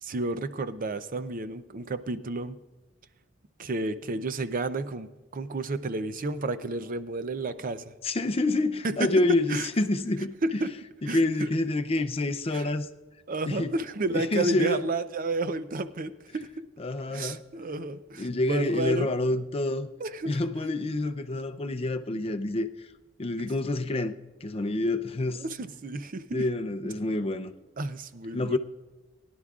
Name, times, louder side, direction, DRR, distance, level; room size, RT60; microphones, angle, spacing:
voice 1, 0.0-2.6 3.6-7.9 8.8-9.1 9.5-9.7 10.4-10.7 11.1-11.5 12.5-12.7 13.3-16.5 17.1-19.1 20.0-20.4 25.4-26.5 27.8-28.6, right 2 dB, 45° right, 0.5 m, -31 dB
voice 2, 8.0-10.3 11.0-12.9 13.5-13.7 14.1-14.9 16.8-17.4 18.2-19.9 20.3-22.9 23.2-24.1 24.4-25.4 26.3-27.5 28.3-28.6, left 2 dB, 30° left, 0.5 m, -27 dB
21.0 x 11.0 x 2.4 m
head